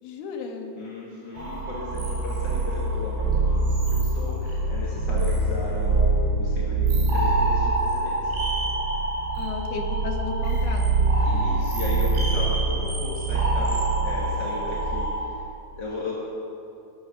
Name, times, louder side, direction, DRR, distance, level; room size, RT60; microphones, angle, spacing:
voice 1, 0.0-0.7 9.4-11.4, left 4 dB, 75° left, 2 dB, 3.3 m, -34 dB
voice 2, 0.8-8.4 11.2-15.4 15.8-16.1, left 3 dB, 40° left, -6 dB, 1.6 m, -35 dB
sound 1, 1.4-15.2, right 3 dB, 85° right, 5.0 m, -24 dB
21.0 x 8.7 x 5.9 m, 2.8 s
omnidirectional pair, 4.7 m